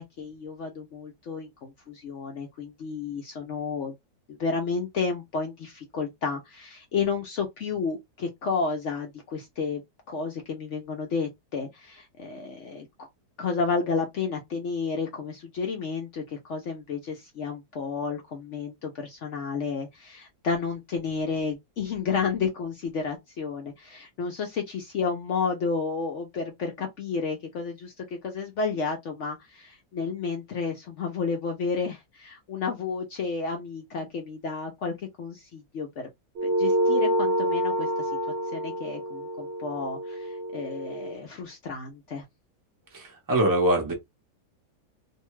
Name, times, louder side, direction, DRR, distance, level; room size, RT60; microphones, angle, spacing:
voice 1, 0.0-3.9 4.4-9.8 10.1-13.1 13.4-35.9 36.4-38.1 38.5-42.2, left 5 dB, 65° left, 0.7 m, -31 dB
sound 1, 36.4-41.2, right 1 dB, 65° right, 0.7 m, -27 dB
voice 2, 42.9-43.9, right 1 dB, 20° right, 0.5 m, -23 dB
2.7 x 2.2 x 3.0 m
omnidirectional pair, 1.7 m